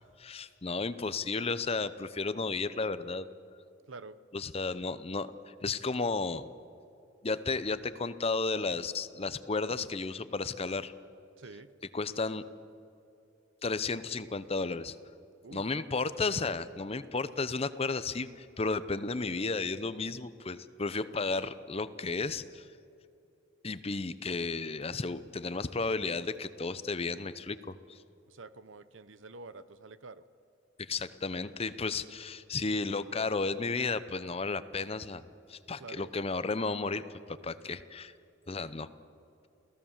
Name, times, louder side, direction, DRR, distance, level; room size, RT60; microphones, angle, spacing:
voice 1, 0.2-3.3 4.3-5.3 5.6-6.5 7.2-10.9 11.9-12.4 13.6-15.0 15.5-22.7 23.6-28.0 30.8-35.2 35.5-38.1 38.5-38.9, left 3 dB, 30° left, 13 dB, 0.7 m, -33 dB
voice 2, 11.4-11.7 15.4-15.7 28.3-30.2 35.8-36.1, right 3 dB, 85° right, 14 dB, 0.9 m, -48 dB
28.0 x 17.0 x 7.3 m, 2.6 s
head